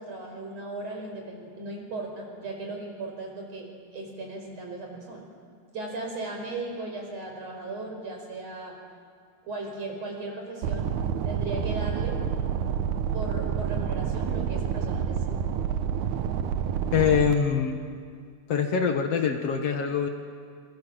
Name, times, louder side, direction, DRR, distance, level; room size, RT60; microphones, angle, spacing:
voice 1, 0.0-5.2 5.7-8.8 9.4-10.9 11.2-12.2 13.1-15.4, right 2 dB, 60° right, 1 dB, 6.1 m, -37 dB
sound 1, 10.6-17.3, right 8 dB, 90° right, 2.5 m, -28 dB
voice 2, 16.9-17.8 18.5-20.1, left 7 dB, 60° left, 5 dB, 2.4 m, -24 dB
28.0 x 24.0 x 7.5 m, 2.1 s
omnidirectional pair, 3.3 m